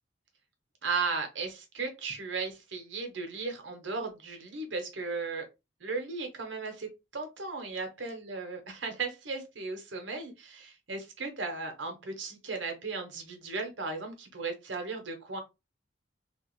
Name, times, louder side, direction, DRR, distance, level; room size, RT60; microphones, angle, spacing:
voice 1, 0.8-5.4 5.8-15.4, right 4 dB, 70° right, 1.1 m, -36 dB
3.2 x 2.5 x 3.1 m
head